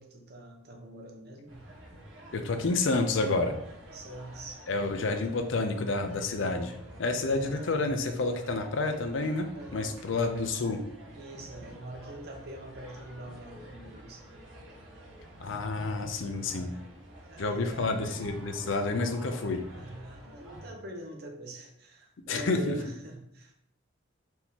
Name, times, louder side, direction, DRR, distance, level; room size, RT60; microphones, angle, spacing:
voice 1, 0.0-1.6 3.9-5.3 7.4-7.9 9.5-10.0 11.1-14.4 17.2-17.9 19.8-23.5, right 1 dB, 50° right, 2 dB, 0.8 m, -44 dB
sound 1, 1.5-20.7, right 1 dB, 70° right, 1.3 m, -49 dB
voice 2, 2.3-3.6 4.7-10.8 15.4-16.7 17.4-19.6 22.3-22.7, left 3 dB, 75° left, 6 dB, 0.5 m, -29 dB
4.3 x 2.9 x 3.6 m, 0.73 s
head